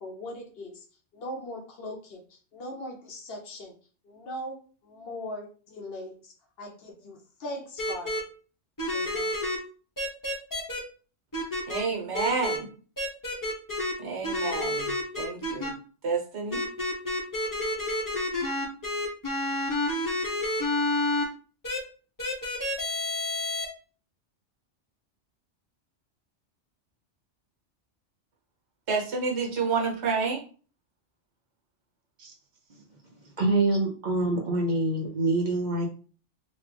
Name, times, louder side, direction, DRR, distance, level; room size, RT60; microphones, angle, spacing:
voice 1, 0.0-0.7 1.1-2.2 2.5-3.7 4.0-4.6 4.8-6.3 6.6-8.1 8.9-9.3, left 1 dB, 60° left, 2 dB, 0.8 m, -39 dB
sound 1, 7.8-8.2 8.8-9.6 10.0-10.8 11.3-11.8 12.1-12.6 13.0-13.9 14.2-15.7 16.5-21.2 21.6-21.8 22.2-23.6, left 1 dB, 20° left, 0.7 m, -29 dB
voice 2, 11.7-12.7 14.0-15.7 16.0-16.6 28.9-30.4 32.2-32.3, right 4 dB, 70° right, -1 dB, 1.1 m, -29 dB
voice 3, 33.4-35.9, right 2 dB, 50° right, -1 dB, 0.6 m, -25 dB
3.0 x 2.2 x 3.3 m, 0.39 s
omnidirectional pair, 1.2 m